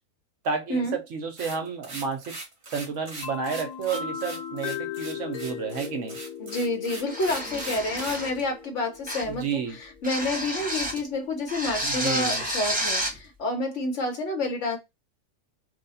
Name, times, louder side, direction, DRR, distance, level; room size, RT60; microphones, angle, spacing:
voice 1, 0.4-2.4 2.7-6.2 9.3-9.8 11.8-12.4, right 6 dB, 60° right, 0.9 m, -31 dB
sound 1, 1.4-8.3, right 2 dB, 35° right, 1.1 m, -40 dB
sound 2, 3.2-10.9, left 8 dB, 90° left, 1.1 m, -38 dB
voice 2, 6.4-9.6 10.0-14.8, left 2 dB, 55° left, 1.2 m, -29 dB
sound 3, 7.1-8.4 9.1-9.4 10.0-11.1 11.5-13.2, equal, 5° right, 0.7 m, -30 dB
2.7 x 2.2 x 3.9 m
omnidirectional pair, 1.6 m